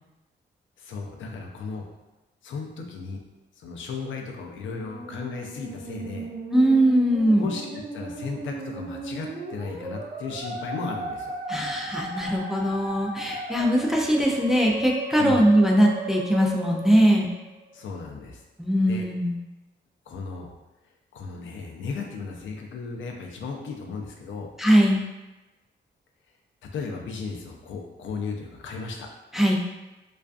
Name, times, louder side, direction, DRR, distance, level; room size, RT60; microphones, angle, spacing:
voice 1, 0.8-1.8 2.4-3.2 3.6-6.3 7.3-11.3 15.2-15.5 17.7-18.4 18.8-19.1 20.1-20.5 21.1-24.5 26.7-29.1, left 4 dB, 80° left, 2 dB, 0.4 m, -35 dB
Musical instrument, 4.5-17.8, right 2 dB, 30° right, 0.9 m, -36 dB
voice 2, 6.5-7.5 11.5-17.3 18.6-19.4 24.6-25.0 29.3-29.6, equal, ahead, -1 dB, 0.3 m, -21 dB
2.4 x 2.3 x 2.4 m, 1.1 s
cardioid pair, 105°, 20 cm